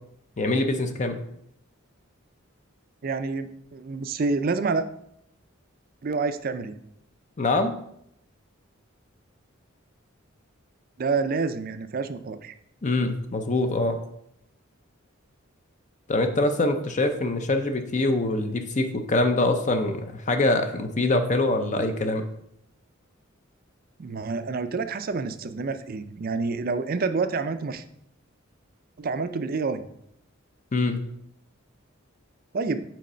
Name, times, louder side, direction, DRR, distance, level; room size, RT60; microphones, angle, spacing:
voice 1, 0.4-1.2 7.4-7.7 12.8-14.0 16.1-22.3 30.7-31.0, left 2 dB, 35° left, 7 dB, 0.6 m, -24 dB
voice 2, 3.0-4.8 6.0-6.8 11.0-12.5 24.0-27.8 29.0-29.9 32.5-32.8, right 4 dB, 45° right, 10 dB, 0.4 m, -28 dB
6.3 x 4.1 x 5.5 m, 0.75 s
head